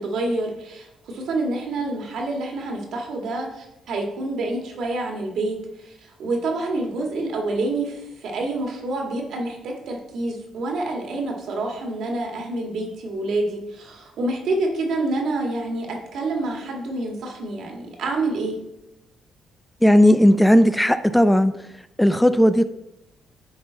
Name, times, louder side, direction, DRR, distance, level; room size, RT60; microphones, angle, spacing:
voice 1, 0.0-15.9 16.1-18.6, right 2 dB, 70° right, 1 dB, 1.8 m, -27 dB
voice 2, 19.8-21.5 22.0-22.6, equal, 5° left, 12 dB, 0.3 m, -15 dB
10.5 x 3.7 x 3.9 m, 0.89 s
cardioid pair, 90°, 0 cm